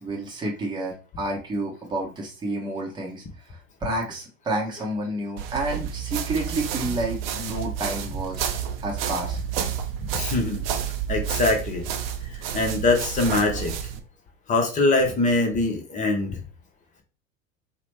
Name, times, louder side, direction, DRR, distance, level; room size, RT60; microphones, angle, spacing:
voice 1, 0.0-8.5 8.8-9.4, right 2 dB, 10° right, -1 dB, 0.8 m, -30 dB
sound 1, 5.4-14.0, right 9 dB, 50° right, 0.5 m, -30 dB
voice 2, 10.1-10.6 11.1-11.9 12.5-13.8 14.5-16.4, left 2 dB, 20° left, 3 dB, 0.6 m, -23 dB
2.9 x 2.1 x 3.1 m, 0.34 s
figure-of-eight pair, 90°, 40 cm